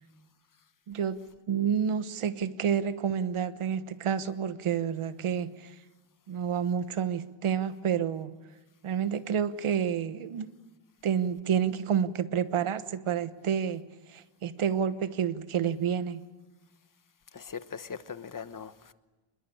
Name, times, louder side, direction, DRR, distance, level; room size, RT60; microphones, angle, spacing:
voice 1, 0.9-1.2 1.5-5.7 6.3-8.4 8.8-10.5 11.0-16.3, right 8 dB, 75° right, 1.3 m, -29 dB
voice 2, 17.3-18.9, left 6 dB, 40° left, 1.1 m, -40 dB
26.5 x 21.5 x 8.7 m
wide cardioid pair, 120°, 50 cm